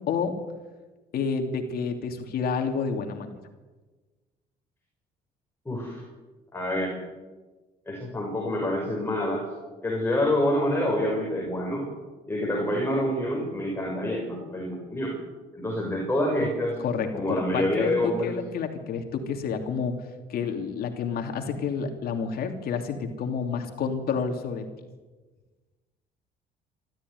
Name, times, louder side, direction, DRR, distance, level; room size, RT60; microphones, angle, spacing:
voice 1, 1.1-3.3 16.8-19.9 20.3-24.6, left 6 dB, 65° left, 5 dB, 2.9 m, -29 dB
voice 2, 5.6-6.0 6.5-7.0 7.9-9.4 9.8-11.9 12.3-15.2 15.5-16.8 17.1-18.3, left 1 dB, 15° left, -1 dB, 6.0 m, -27 dB
25.5 x 13.5 x 9.7 m, 1.3 s
cardioid pair, 110°, 17 cm